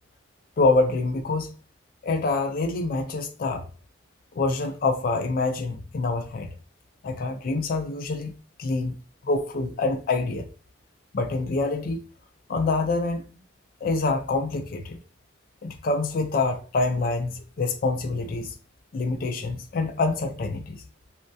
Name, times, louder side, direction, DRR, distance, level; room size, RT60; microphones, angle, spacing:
voice 1, 0.6-1.6 2.0-3.7 4.3-6.5 7.0-8.3 8.6-9.0 9.2-10.5 11.1-12.0 12.5-13.2 13.8-15.0 15.6-18.5 18.9-20.8, left 3 dB, 50° left, 0.3 m, -26 dB
2.2 x 2.1 x 2.6 m
head